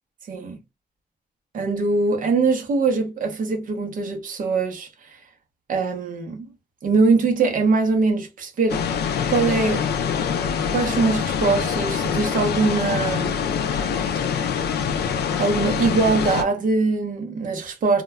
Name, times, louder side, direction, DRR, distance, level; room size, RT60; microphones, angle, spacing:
voice 1, 0.3-0.6 1.5-5.2 5.7-6.5 6.8-8.9 9.3-9.9 10.7-13.6 15.4-18.0, right 4 dB, 55° right, 0.6 m, -22 dB
sound 1, 8.7-16.4, left 7 dB, 85° left, 0.4 m, -24 dB
2.2 x 2.1 x 3.4 m
wide cardioid pair, 180°, 16 cm